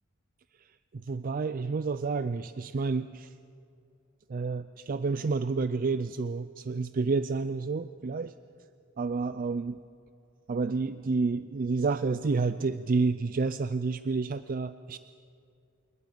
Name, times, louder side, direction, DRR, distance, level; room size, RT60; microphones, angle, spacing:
voice 1, 0.6-3.3 4.3-8.3 9.0-9.8 10.5-15.0, right 4 dB, 45° right, 13 dB, 0.4 m, -30 dB
26.0 x 20.5 x 5.1 m, 2.4 s
head